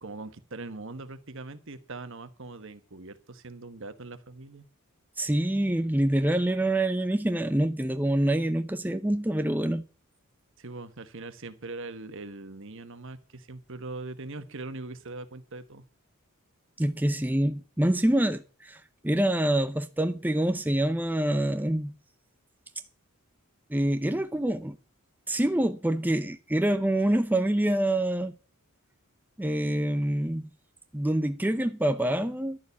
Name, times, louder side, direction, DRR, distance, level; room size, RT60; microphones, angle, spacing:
voice 1, 0.0-4.7 10.6-15.8, right 3 dB, 60° right, 1.3 m, -41 dB
voice 2, 5.2-9.8 16.8-21.9 23.7-24.8 25.3-28.3 29.4-30.4 30.9-32.6, right 1 dB, 10° right, 0.6 m, -26 dB
11.5 x 7.0 x 8.4 m
head